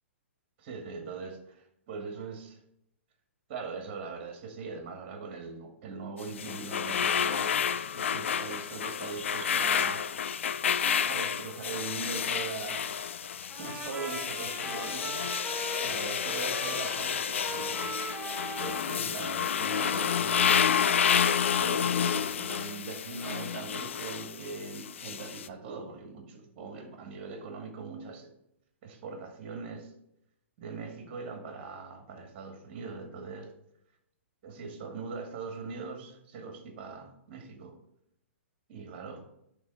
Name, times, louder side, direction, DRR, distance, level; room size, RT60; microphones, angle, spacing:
voice 1, 0.6-2.6 3.5-7.7 7.9-10.1 11.1-12.9 13.6-15.2 15.8-18.3 18.6-20.9 21.6-28.3 28.8-29.9 30.6-33.5 34.4-37.8 38.7-39.3, right 4 dB, 40° right, 4 dB, 2.1 m, -41 dB
sound 1, 6.2-25.5, left 8 dB, 65° left, 0.5 m, -30 dB
Trumpet, 13.5-21.4, right 2 dB, 5° left, 3.1 m, -41 dB
11.0 x 3.7 x 7.0 m, 0.78 s
hypercardioid pair, 120°, 7 cm